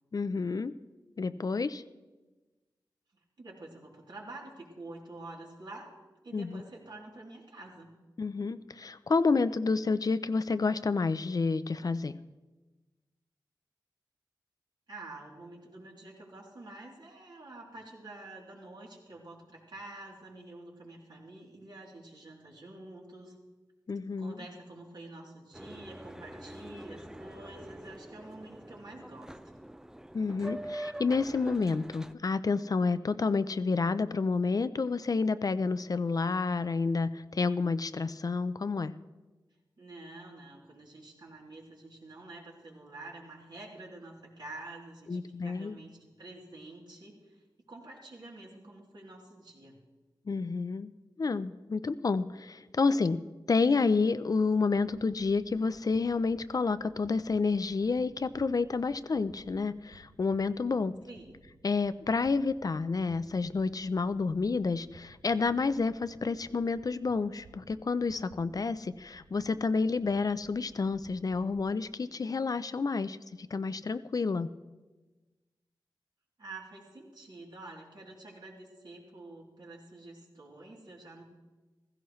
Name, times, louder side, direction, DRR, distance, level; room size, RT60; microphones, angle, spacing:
voice 1, 0.1-0.7 1.2-1.8 6.3-6.6 8.2-12.1 23.9-24.4 30.1-38.9 45.1-45.8 50.3-50.9 51.2-61.0 61.6-74.5, left 4 dB, 50° left, 13 dB, 0.5 m, -29 dB
voice 2, 3.4-5.9 6.2-8.0 14.9-23.3 24.2-29.4 39.8-47.4 47.7-49.7 61.1-61.4 76.4-81.2, right 2 dB, 70° right, -3 dB, 3.1 m, -48 dB
Boat Water vehicle, 25.5-32.1, right 1 dB, 5° right, 0.4 m, -44 dB
sound 1, 54.7-71.6, right 2 dB, 90° right, 1.4 m, -59 dB
15.5 x 15.5 x 3.1 m, 1.2 s
wide cardioid pair, 75°, 8 cm